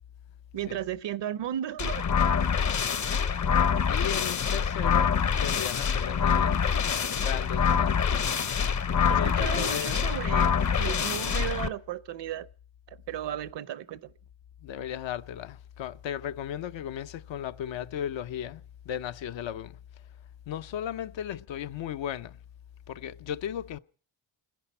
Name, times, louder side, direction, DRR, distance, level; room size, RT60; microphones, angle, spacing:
voice 1, 0.5-2.1 9.1-12.5 13.1-14.1, right 11 dB, 65° right, 0.7 m, -35 dB
sound 1, 1.8-11.7, left 7 dB, 40° left, 0.7 m, -25 dB
voice 2, 3.9-6.6 7.2-8.2 9.2-10.1 14.6-19.8 20.5-22.4 22.9-23.8, left 10 dB, 75° left, 0.7 m, -36 dB
29.5 x 10.5 x 4.3 m
cardioid pair, 80°, 46 cm